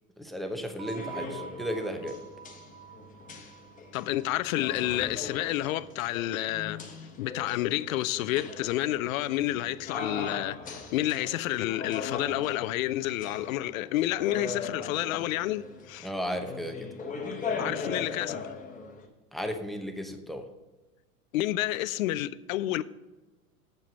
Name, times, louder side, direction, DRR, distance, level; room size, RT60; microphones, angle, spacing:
voice 1, 0.2-2.2 16.0-16.9 19.3-20.5, equal, ahead, 0.9 m, -34 dB
sound 1, 0.7-19.0, left 4 dB, 15° left, 1.5 m, -39 dB
sound 2, 0.8-5.4, right 8 dB, 35° right, 1.7 m, -46 dB
voice 2, 3.9-6.8 7.2-16.1 17.6-18.5 21.3-22.8, left 15 dB, 60° left, 0.6 m, -30 dB
7.8 x 7.4 x 5.3 m
hypercardioid pair, 95°, 47 cm